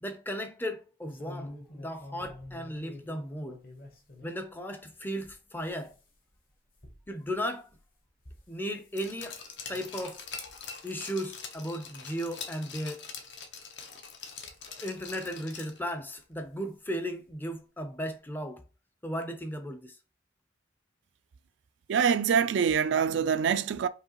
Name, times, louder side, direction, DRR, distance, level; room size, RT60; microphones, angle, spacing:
voice 1, 0.0-3.6 4.2-5.9 7.1-7.7 8.5-9.4 9.7-10.2 10.8-13.0 14.7-18.6 19.0-20.0, equal, 10° left, 0.5 m, -36 dB
sound 1, 1.1-4.4 4.8-9.0 9.3-9.7 10.3-10.6 10.9-11.2 11.8-11.9 12.2-12.3 13.5-13.6 14.3-15.2 16.3-16.5 16.8-16.9 17.3-17.4, left 1 dB, 50° left, 1.1 m, -49 dB
Glass, 9.0-15.9 16.2-16.3, left 6 dB, 65° left, 0.8 m, -44 dB
voice 2, 21.9-23.9, right 7 dB, 70° right, 0.3 m, -25 dB
4.7 x 2.9 x 2.9 m
head